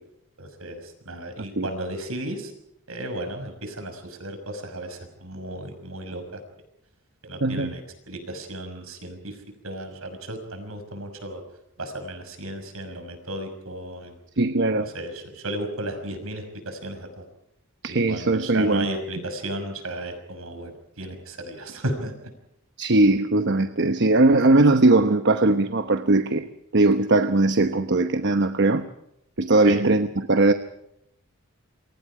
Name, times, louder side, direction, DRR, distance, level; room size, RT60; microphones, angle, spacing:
voice 1, 0.4-2.5 2.9-6.4 7.2-11.4 11.8-14.2 14.8-17.2 17.9-22.1 29.6-29.8, right 1 dB, 70° right, 7 dB, 6.0 m, -34 dB
voice 2, 7.4-7.7 14.4-14.9 17.8-18.9 22.8-28.9 29.4-30.5, right 2 dB, 50° right, 9 dB, 1.0 m, -20 dB
28.5 x 24.0 x 5.0 m, 0.80 s
head